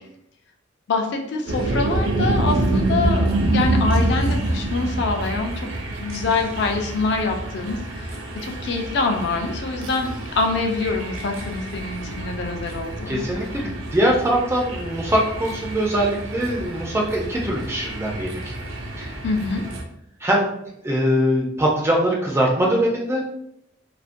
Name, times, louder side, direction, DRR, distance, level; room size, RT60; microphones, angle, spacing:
voice 1, 0.9-5.7 6.0-13.2 19.2-19.6, left 3 dB, 60° left, 3 dB, 0.4 m, -25 dB
sound 1, 1.5-19.8, right 1 dB, 80° right, 0.4 m, -27 dB
voice 2, 13.1-18.5 19.0-19.1 20.2-20.5 20.8-23.2, equal, 15° right, -2 dB, 0.3 m, -22 dB
2.4 x 2.1 x 2.5 m, 0.76 s
head